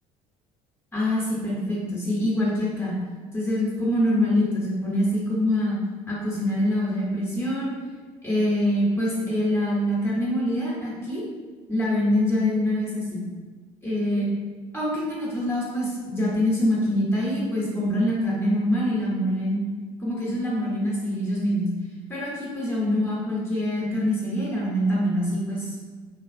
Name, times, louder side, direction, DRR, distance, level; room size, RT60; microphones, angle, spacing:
voice 1, 0.9-2.9 3.3-5.8 6.1-7.7 8.2-11.2 11.7-13.2 13.8-14.3 14.7-19.6 20.0-21.7 22.1-25.8, left 1 dB, 15° left, -6 dB, 0.9 m, -25 dB
2.6 x 2.3 x 2.4 m, 1.5 s
hypercardioid pair, 65°, 16 cm